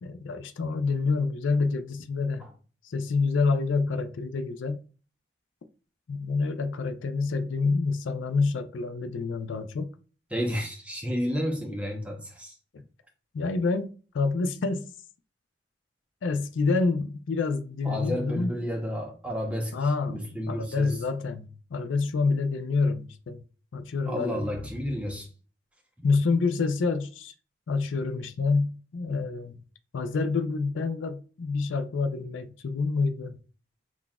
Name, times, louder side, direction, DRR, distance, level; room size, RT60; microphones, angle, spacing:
voice 1, 0.0-2.5 2.8-4.8 6.1-9.9 13.3-14.9 16.2-18.5 19.7-23.4 23.7-24.5 26.0-27.3 27.7-29.5 29.9-33.4, left 4 dB, 85° left, 0.4 m, -27 dB
voice 2, 10.3-12.6 17.8-19.7 20.1-21.0 24.1-25.3, equal, 5° right, 0.7 m, -31 dB
5.8 x 2.4 x 2.2 m
head